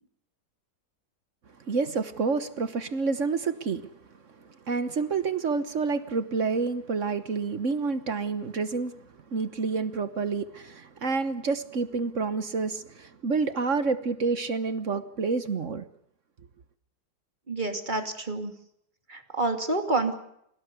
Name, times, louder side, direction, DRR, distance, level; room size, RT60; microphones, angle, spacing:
voice 1, 1.7-3.9 4.7-8.9 9.3-15.8, right 4 dB, 45° right, 1.2 m, -28 dB
voice 2, 17.5-18.5 19.1-20.1, right 2 dB, 20° right, 2.7 m, -28 dB
27.0 x 18.0 x 8.2 m
omnidirectional pair, 2.3 m